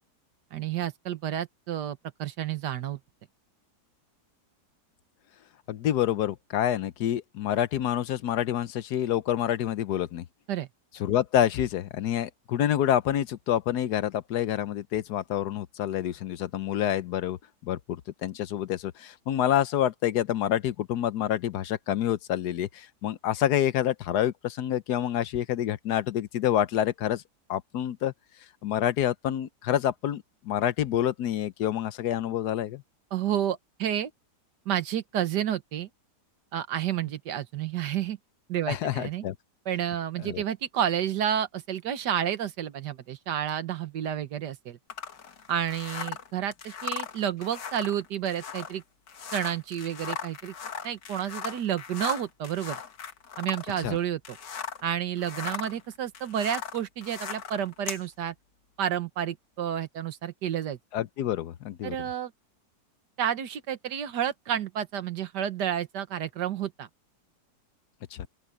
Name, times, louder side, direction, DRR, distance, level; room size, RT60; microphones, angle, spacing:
voice 1, 0.5-3.0 10.5-10.7 33.1-34.1 34.6-35.9 36.5-38.2 38.5-39.2 39.6-44.8 45.5-48.8 49.3-50.5 50.8-52.8 53.4-54.4 54.8-58.3 58.8-60.8 61.8-62.3 63.2-66.9, right 10 dB, 80° right, 1.7 m, -30 dB
voice 2, 5.7-10.2 11.0-27.2 27.5-28.1 28.6-32.8 38.7-39.3 40.2-40.4 53.8-54.0 60.9-62.0 68.1-68.3, left 11 dB, 70° left, 1.3 m, -27 dB
sound 1, 44.9-54.9 55.2-58.0, left 7 dB, 90° left, 2.2 m, -38 dB
open air
omnidirectional pair, 1.8 m